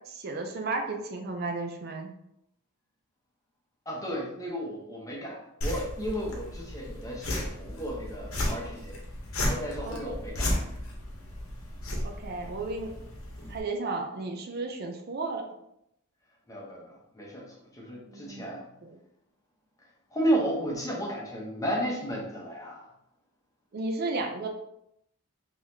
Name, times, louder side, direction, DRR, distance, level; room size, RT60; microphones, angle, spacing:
voice 1, 0.1-2.1 9.8-10.1 12.0-12.9 13.5-15.4 18.1-18.5 18.8-19.0 23.7-24.5, right 3 dB, 45° right, 3 dB, 0.4 m, -33 dB
voice 2, 3.9-9.0 9.4-10.5 16.5-18.7 20.1-22.9, equal, 15° left, -3 dB, 0.8 m, -33 dB
sound 1, 5.6-13.6, left 1 dB, 70° left, 0.9 m, -34 dB
3.9 x 3.0 x 2.7 m, 0.78 s
head